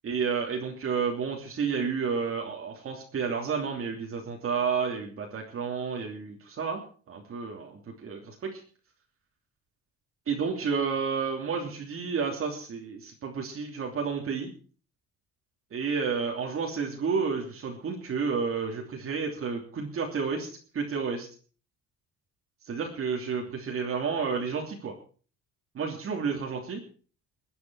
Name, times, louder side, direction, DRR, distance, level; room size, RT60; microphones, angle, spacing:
voice 1, 0.0-8.6 10.3-14.5 15.7-20.5 20.7-21.3 22.7-24.9 25.7-26.8, right 5 dB, 45° right, 0 dB, 3.0 m, -31 dB
22.5 x 9.4 x 4.8 m, 0.41 s
cardioid pair, 125°, 30 cm